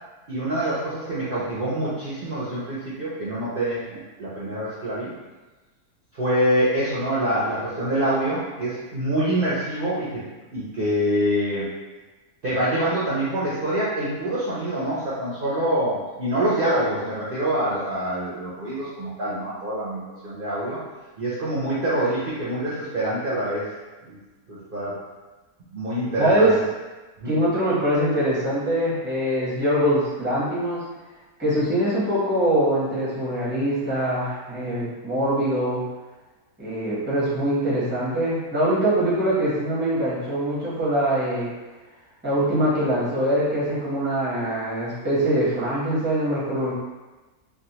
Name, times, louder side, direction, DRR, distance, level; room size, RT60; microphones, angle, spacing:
voice 1, 0.3-5.1 6.1-10.2 10.5-11.7 12.4-20.8 21.2-23.6 24.1-24.2 24.5-25.0 25.7-26.5 27.2-27.3, right 1 dB, 50° right, -10 dB, 0.7 m, -25 dB
voice 2, 26.2-26.5 27.2-30.8 31.4-35.8 36.6-41.5 42.2-46.7, right 1 dB, 10° right, -8 dB, 0.7 m, -23 dB
3.3 x 2.4 x 2.8 m, 1.2 s
omnidirectional pair, 1.6 m